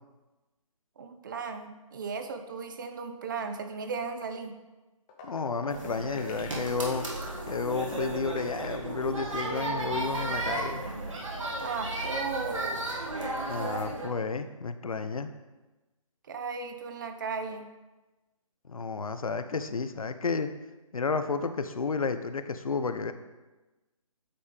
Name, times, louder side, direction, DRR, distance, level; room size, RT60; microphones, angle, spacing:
voice 1, 1.0-4.6 11.6-12.9 16.3-17.7, right 5 dB, 35° right, 7 dB, 0.6 m, -36 dB
sound 1, 5.1-10.7, left 6 dB, 10° left, 0.3 m, -45 dB
voice 2, 5.2-7.1 7.5-10.8 13.5-15.3 18.7-20.5 20.9-23.1, left 4 dB, 75° left, 10 dB, 0.6 m, -31 dB
sound 2, 5.7-14.1, right 2 dB, 60° right, 1.5 m, -34 dB
8.6 x 3.2 x 5.0 m, 1.1 s
figure-of-eight pair, 145°, 18 cm